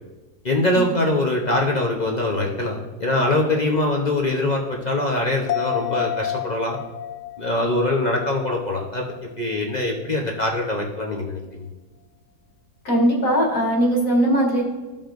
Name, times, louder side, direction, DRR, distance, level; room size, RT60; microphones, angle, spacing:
voice 1, 0.4-6.8 7.4-9.0 9.4-11.7, left 2 dB, 35° left, 0 dB, 0.7 m, -23 dB
sound 1, 5.5-9.2 9.5-9.6, left 12 dB, 80° left, 1.2 m, -30 dB
voice 2, 12.8-14.6, right 1 dB, 55° left, -3 dB, 2.2 m, -19 dB
14.5 x 5.4 x 2.6 m, 1.2 s
omnidirectional pair, 1.8 m